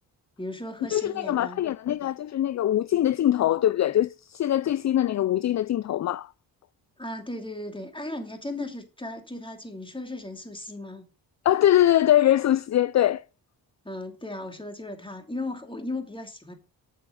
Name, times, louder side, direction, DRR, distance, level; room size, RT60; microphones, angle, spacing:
voice 1, 0.4-1.6 7.0-11.0 13.8-16.5, left 2 dB, 10° left, 2.6 m, -36 dB
voice 2, 0.9-6.3 11.4-13.2, left 12 dB, 40° left, 0.4 m, -22 dB
8.1 x 6.2 x 5.2 m
supercardioid pair, 45°, 48 cm